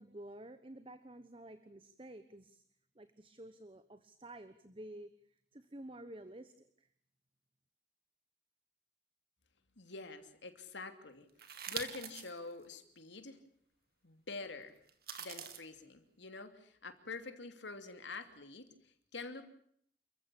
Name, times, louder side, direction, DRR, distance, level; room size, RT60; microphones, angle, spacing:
voice 1, 0.0-2.6 2.9-6.9, right 1 dB, 30° right, 11 dB, 1.1 m, -51 dB
voice 2, 9.8-11.3 11.7-13.4 14.0-14.8 15.2-19.5, left 3 dB, 80° left, 8 dB, 2.8 m, -46 dB
sound 1, 11.4-12.3 12.8-12.9 14.9-15.6, right 8 dB, 55° right, 2.6 m, -43 dB
29.0 x 15.0 x 8.5 m, 0.65 s
head